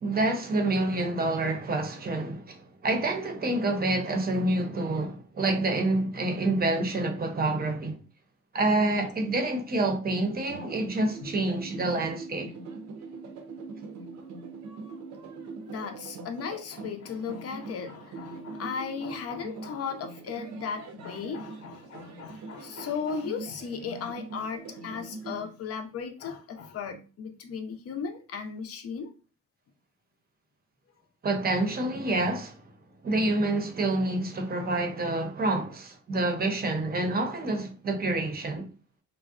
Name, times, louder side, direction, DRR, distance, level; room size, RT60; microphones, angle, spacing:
voice 1, 0.0-8.0 8.5-12.5 31.2-32.7 33.0-38.7, right 2 dB, 30° right, 0.6 m, -27 dB
sound 1, 10.5-25.5, right 4 dB, 70° right, 0.6 m, -42 dB
voice 2, 15.7-29.1, left 6 dB, 50° left, 0.6 m, -36 dB
2.5 x 2.1 x 2.4 m
cardioid pair, 90°, 30 cm